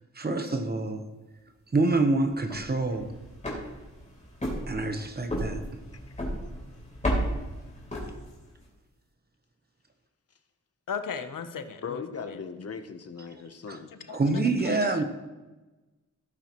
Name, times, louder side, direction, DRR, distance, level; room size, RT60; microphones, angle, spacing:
voice 1, 0.2-1.0 1.7-3.1 4.7-5.6 13.7-13.8 14.1-15.0, right 3 dB, 30° right, 6 dB, 0.9 m, -26 dB
sound 1, 2.3-8.6, equal, 20° left, 3.4 m, -34 dB
voice 2, 10.9-12.0 12.3-12.7 13.9-14.2 14.6-15.0, left 6 dB, 85° left, 9 dB, 0.9 m, -37 dB
voice 3, 11.8-13.9, left 6 dB, 50° left, 9 dB, 0.8 m, -38 dB
17.0 x 8.5 x 3.0 m, 1.1 s
wide cardioid pair, 170°, 32 cm